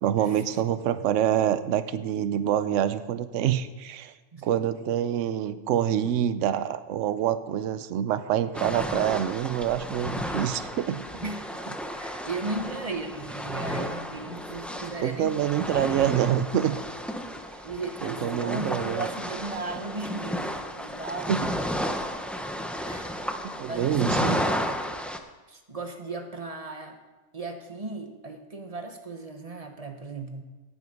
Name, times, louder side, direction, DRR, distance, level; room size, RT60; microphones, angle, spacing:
voice 1, 0.0-4.1 4.4-11.0 15.0-16.8 18.0-19.1 21.3-21.4 23.6-24.4, right 10 dB, 65° right, 13 dB, 1.0 m, -26 dB
sound 1, 8.5-25.2, equal, ahead, 0.4 m, -33 dB
voice 2, 11.2-16.1 17.6-21.6 22.9-23.1 23.6-24.3 25.5-27.0 27.3-30.4, right 3 dB, 30° right, 5 dB, 1.0 m, -36 dB
18.0 x 6.3 x 5.3 m, 1.3 s
omnidirectional pair, 1.4 m